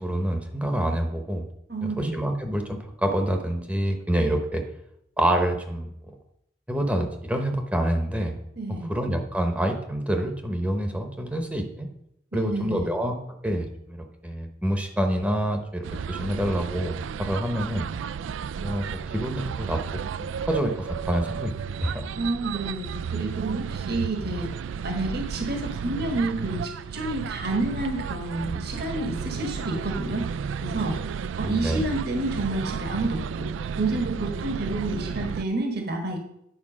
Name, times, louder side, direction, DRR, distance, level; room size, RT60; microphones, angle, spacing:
voice 1, 0.0-1.5 1.8-4.6 5.2-5.9 6.7-8.4 8.7-11.9 12.3-13.1 13.4-17.9 18.6-20.0 20.5-21.5 21.8-22.0 31.4-31.8, right 1 dB, 5° right, 4 dB, 0.9 m, -27 dB
voice 2, 1.7-2.2 8.6-8.9 12.3-12.9 22.2-24.5 24.8-30.3 30.6-31.0 31.4-33.5 33.8-36.2, right 2 dB, 55° right, 4 dB, 1.3 m, -29 dB
sound 1, 15.8-35.4, right 7 dB, 80° right, 0.3 m, -33 dB
9.7 x 4.6 x 6.2 m, 0.77 s
head